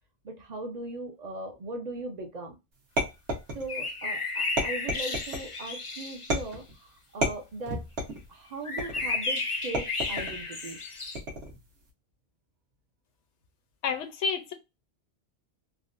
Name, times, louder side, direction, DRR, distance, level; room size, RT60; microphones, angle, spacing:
voice 1, 0.2-2.6 3.5-7.8 8.3-10.8, right 2 dB, 50° right, 0.5 m, -39 dB
sound 1, 3.0-3.9 4.6-5.5 6.3-6.7 7.2-8.3 8.8-9.2 9.7-10.4 11.2-11.6, equal, 65° right, 1.3 m, -31 dB
sound 2, 3.7-6.4 8.6-11.2, left 3 dB, 40° left, 0.5 m, -33 dB
voice 2, 13.8-14.5, left 5 dB, 75° left, 0.9 m, -29 dB
3.5 x 2.1 x 2.4 m
omnidirectional pair, 1.2 m